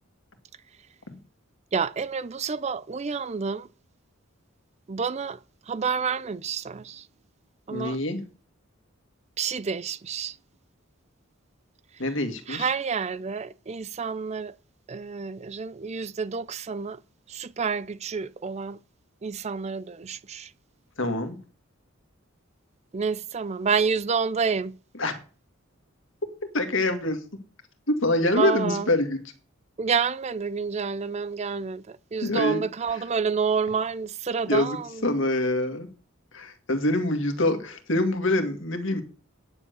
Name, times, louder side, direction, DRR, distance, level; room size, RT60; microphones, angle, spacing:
voice 1, 1.7-3.7 4.9-7.1 7.7-8.0 9.4-10.4 11.9-12.1 12.5-14.5 14.9-17.0 17.3-18.8 19.2-20.5 22.9-24.7 28.3-28.9 29.8-35.1, right 5 dB, 30° right, 0.4 m, -29 dB
voice 2, 7.7-8.2 12.0-12.6 21.0-21.4 25.0-25.1 26.5-27.2 27.9-29.2 32.2-32.6 34.5-34.8 35.0-35.9 36.3-39.0, left 1 dB, 65° left, 2.0 m, -25 dB
9.7 x 7.3 x 8.2 m
head